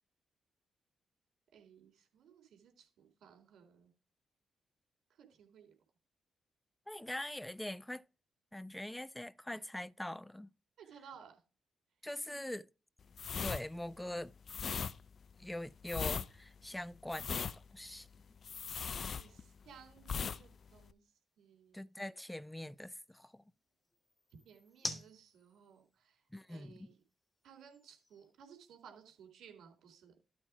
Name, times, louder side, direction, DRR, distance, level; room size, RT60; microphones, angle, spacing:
voice 1, 1.5-3.9 5.1-5.7 10.8-11.4 19.2-21.9 24.4-27.0 27.4-30.1, right 7 dB, 70° right, 3.7 m, -59 dB
voice 2, 6.9-8.0 8.5-10.5 12.0-12.7 13.4-14.3 15.4-18.1 21.7-23.4 26.3-26.9, left 1 dB, 10° left, 0.6 m, -43 dB
sound 1, 13.1-19.7 20.0-20.4 20.7-20.9, left 6 dB, 60° left, 0.6 m, -39 dB
sound 2, 15.0-29.3, left 2 dB, 25° left, 2.9 m, -54 dB
12.5 x 4.4 x 4.8 m
hypercardioid pair, 40°, 0 cm